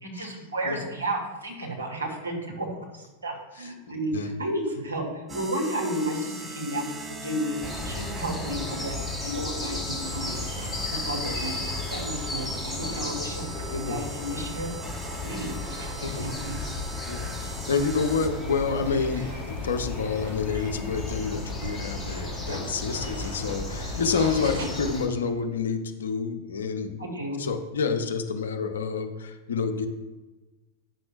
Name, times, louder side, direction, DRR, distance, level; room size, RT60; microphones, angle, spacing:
voice 1, 0.0-2.7 3.0-7.6 7.8-10.4 11.0-11.6 11.9-14.7 15.2-15.5 16.1-16.6 27.0-27.4, right 1 dB, 75° right, -1 dB, 1.6 m, -32 dB
sound 1, 5.3-18.7, right 2 dB, 10° right, 0.7 m, -41 dB
sound 2, 7.6-25.1, left 2 dB, 5° left, 1.2 m, -34 dB
sound 3, 10.0-24.7, right 2 dB, 60° right, 1.6 m, -43 dB
voice 2, 13.7-14.0 16.0-16.3 17.1-27.1 27.4-29.9, left 5 dB, 65° left, 6 dB, 0.7 m, -28 dB
9.0 x 6.0 x 2.5 m, 1.1 s
figure-of-eight pair, 90°, 0 cm